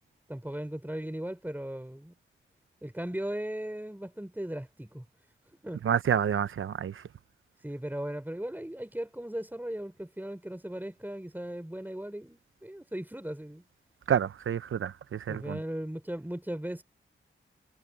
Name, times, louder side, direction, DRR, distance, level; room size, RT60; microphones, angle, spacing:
voice 1, 0.3-2.1 2.8-5.1 5.6-5.8 7.6-13.6 15.3-16.8, right 1 dB, 10° right, 4.5 m, -37 dB
voice 2, 5.8-7.0 14.1-15.6, right 8 dB, 80° right, 0.8 m, -28 dB
cardioid pair, 45°, 21 cm